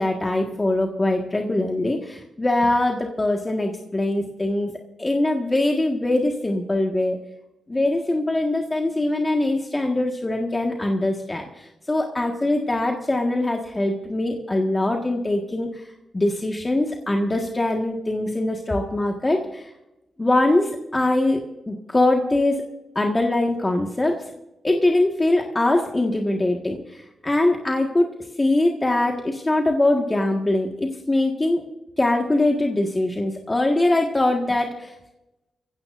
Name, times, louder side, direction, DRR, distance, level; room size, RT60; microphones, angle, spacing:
voice 1, 0.0-4.7 5.0-7.2 7.7-15.7 16.1-19.6 20.2-21.4 21.7-22.6 22.9-24.2 24.6-28.1 28.4-31.6 32.0-34.9, left 2 dB, 20° left, 1 dB, 1.7 m, -22 dB
23.5 x 16.5 x 2.6 m, 0.94 s
cardioid pair, 85°, 0 cm